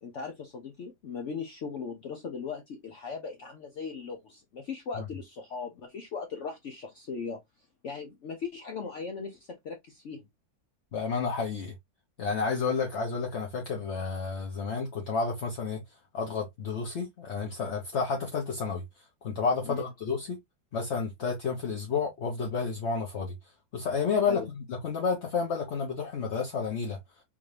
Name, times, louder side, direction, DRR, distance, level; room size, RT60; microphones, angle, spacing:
voice 1, 0.0-7.4 7.8-10.3 19.6-19.8 24.2-24.5, left 5 dB, 85° left, 0.6 m, -38 dB
voice 2, 10.9-11.7 12.2-15.8 16.1-20.4 20.7-23.3 23.7-27.0, left 5 dB, 50° left, 0.9 m, -31 dB
3.6 x 2.7 x 3.2 m
omnidirectional pair, 2.1 m